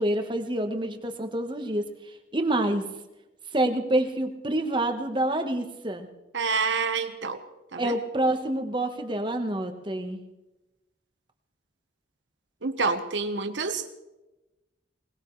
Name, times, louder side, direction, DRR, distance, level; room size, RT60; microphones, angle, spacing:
voice 1, 0.0-1.9 2.3-2.9 3.5-6.1 7.8-10.2, right 1 dB, 25° right, 5 dB, 1.3 m, -27 dB
voice 2, 6.3-7.4 7.7-8.0 12.6-13.9, right 4 dB, 85° right, 6 dB, 1.2 m, -27 dB
21.0 x 20.0 x 3.3 m, 1.0 s
head